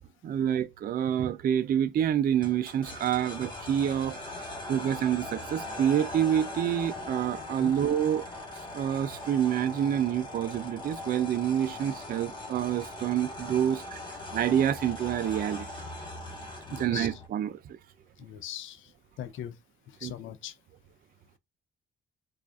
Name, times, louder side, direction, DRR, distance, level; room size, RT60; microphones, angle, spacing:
voice 1, 0.2-8.3 8.5-14.0 14.3-15.9 16.7-17.8 20.0-20.1, right 10 dB, 50° right, 0.4 m, -28 dB
sound 1, 2.4-17.3, left 2 dB, 25° left, 1.3 m, -40 dB
voice 2, 16.7-17.2 18.2-18.9 19.2-19.5 19.9-20.6, left 10 dB, 75° left, 0.5 m, -40 dB
4.8 x 2.4 x 2.5 m
cardioid pair, 90°, 20 cm